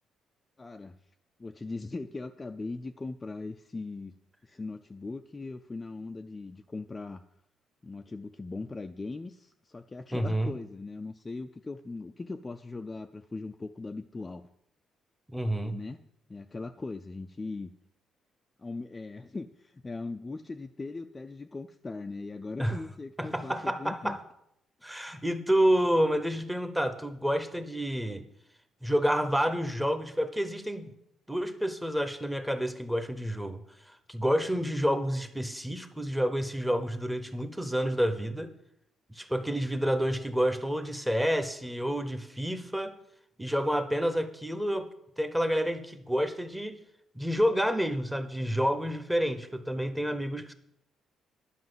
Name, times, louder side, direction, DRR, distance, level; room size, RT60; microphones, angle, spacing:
voice 1, 0.6-1.0 1.4-4.2 4.4-7.2 7.8-14.5 15.5-16.0 16.3-17.7 18.6-24.2, left 3 dB, 20° left, 6 dB, 0.4 m, -39 dB
voice 2, 10.1-10.5 15.3-15.8 22.6-22.8 23.2-24.2 24.8-28.2 28.8-30.9 31.3-38.5 39.1-42.9 43.4-44.9 45.2-46.8 47.1-50.5, equal, 5° right, 10 dB, 0.8 m, -29 dB
11.0 x 5.8 x 7.7 m, 0.78 s
cardioid pair, 150°, 0 cm